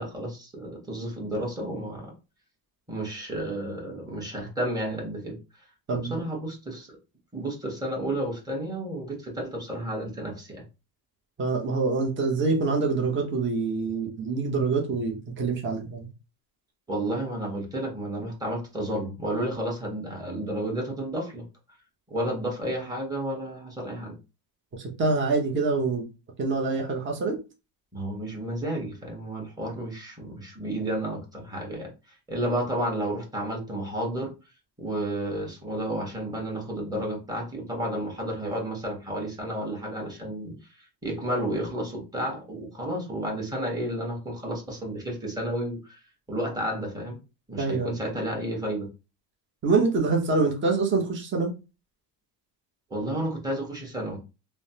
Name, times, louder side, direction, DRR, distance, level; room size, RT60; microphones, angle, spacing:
voice 1, 0.0-2.1 2.9-5.4 5.9-7.0 7.3-10.6 16.9-21.4 22.1-24.2 27.9-31.9 32.3-34.3 34.8-46.0 46.3-47.2 47.5-48.9 52.9-54.2, right 1 dB, 10° right, -1 dB, 1.3 m, -31 dB
voice 2, 5.9-6.2 11.4-16.1 24.8-26.1 26.4-27.4 47.6-48.0 49.6-51.5, right 4 dB, 25° right, 0 dB, 0.8 m, -25 dB
3.1 x 2.1 x 2.8 m, 0.29 s
supercardioid pair, 100°, 45 cm